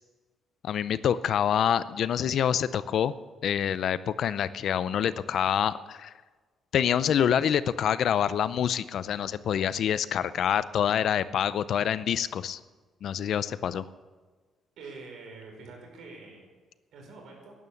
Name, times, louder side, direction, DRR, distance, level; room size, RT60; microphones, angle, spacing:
voice 1, 0.6-3.1 3.4-6.1 6.7-12.6 13.0-13.8, left 9 dB, 60° left, 16 dB, 0.5 m, -26 dB
voice 2, 14.8-16.4 16.9-17.5, right 3 dB, 75° right, 1 dB, 5.1 m, -45 dB
12.5 x 11.0 x 8.4 m, 1.4 s
cardioid pair, 145°, 0 cm